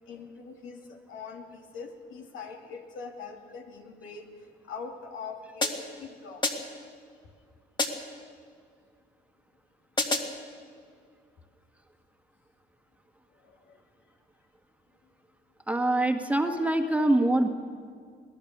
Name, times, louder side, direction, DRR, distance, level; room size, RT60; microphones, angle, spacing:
voice 1, 0.1-6.7 10.5-10.8 13.4-13.8, left 5 dB, 80° left, 2 dB, 2.7 m, -43 dB
sound 1, 5.6-6.0 6.4-6.9 7.8-8.2 10.0-10.4, left 2 dB, 25° left, 2.2 m, -30 dB
voice 2, 15.7-17.5, right 1 dB, 5° right, 4 dB, 1.8 m, -24 dB
23.0 x 17.5 x 6.8 m, 2.1 s
cardioid pair, 90°, 20 cm